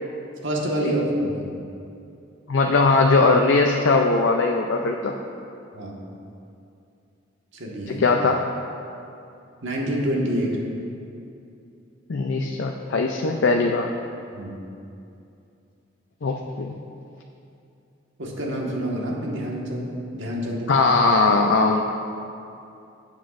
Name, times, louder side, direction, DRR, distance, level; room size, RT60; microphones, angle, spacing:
voice 1, 0.4-1.4 2.6-2.7 5.7-6.0 7.5-8.0 9.6-10.6 14.3-14.6 18.2-20.8, equal, 80° right, -2 dB, 1.6 m, -27 dB
voice 2, 2.5-5.1 7.9-8.5 12.1-13.9 16.2-16.7 20.7-21.8, left 3 dB, 80° left, 2 dB, 0.5 m, -20 dB
16.0 x 7.3 x 2.6 m, 2.6 s
head